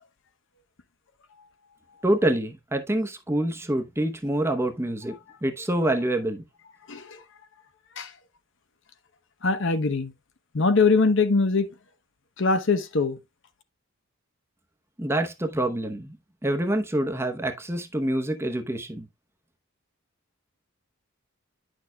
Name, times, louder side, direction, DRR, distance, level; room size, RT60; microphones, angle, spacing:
voice 1, 2.0-5.1 5.4-6.4 15.0-16.2 16.4-19.1, right 1 dB, 10° right, 0.8 m, -26 dB
voice 2, 9.4-10.1 10.5-11.7 12.4-13.2, left 4 dB, 60° left, 0.9 m, -22 dB
9.6 x 6.3 x 2.2 m
head